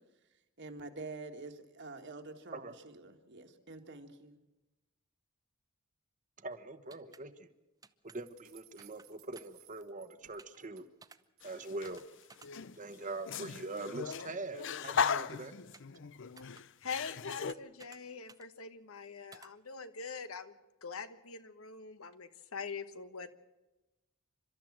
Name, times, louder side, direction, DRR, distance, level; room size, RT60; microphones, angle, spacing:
voice 1, 0.6-4.4, right 3 dB, 55° right, 5 dB, 1.9 m, -47 dB
voice 2, 6.4-7.5 8.0-10.8 11.4-12.0 12.7-15.5, right 2 dB, 35° right, 8 dB, 1.3 m, -43 dB
sound 1, 6.9-7.2 7.8-8.2 8.8-9.1 9.3-9.6 10.4-10.6 11.0-11.2 11.8-12.0 12.3-12.5 15.7-16.0 16.4-16.6 17.4-18.0 18.3-18.5 19.3-19.5, right 4 dB, 15° right, 0.8 m, -56 dB
sound 2, 8.1-11.5 11.8-12.5, right 12 dB, 75° right, 2.1 m, -62 dB
sound 3, 11.4-12.0 12.4-17.5, left 6 dB, 60° left, 0.6 m, -37 dB
voice 3, 16.8-20.5 20.8-23.3, left 5 dB, 75° left, 11 dB, 1.3 m, -44 dB
29.5 x 13.0 x 7.5 m, 1.1 s
head